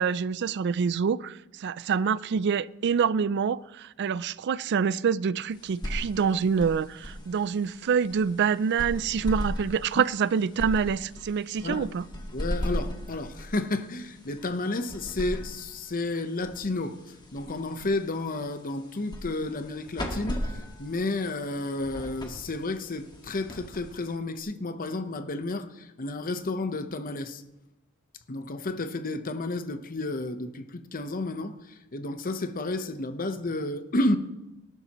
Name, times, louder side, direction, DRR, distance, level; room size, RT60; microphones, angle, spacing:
voice 1, 0.0-12.0, right 6 dB, 55° right, 0.4 m, -26 dB
sound 1, 5.5-24.4, equal, 20° left, 1.7 m, -38 dB
voice 2, 12.3-27.4 28.3-34.2, left 2 dB, 40° left, 0.9 m, -31 dB
19.0 x 12.0 x 3.0 m
head